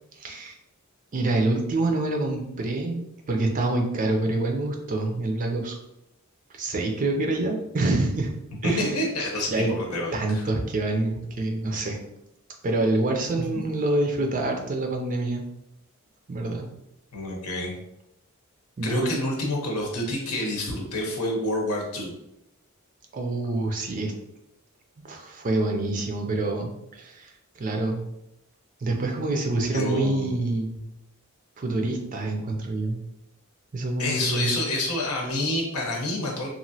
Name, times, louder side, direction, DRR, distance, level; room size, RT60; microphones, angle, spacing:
voice 1, 0.2-0.5 1.1-5.7 6.5-8.3 8.6-8.9 9.5-9.7 10.1-12.0 12.6-15.5 16.3-16.7 18.8-19.1 23.1-24.1 25.0-28.0 28.8-30.8 31.6-33.0 33.7-34.6, right 2 dB, 35° right, 3 dB, 0.4 m, -26 dB
voice 2, 8.6-10.4 13.5-13.6 17.1-17.7 18.8-22.1 29.7-30.4 34.0-36.5, left 1 dB, 80° left, 0 dB, 0.8 m, -28 dB
3.0 x 2.5 x 2.7 m, 0.82 s
head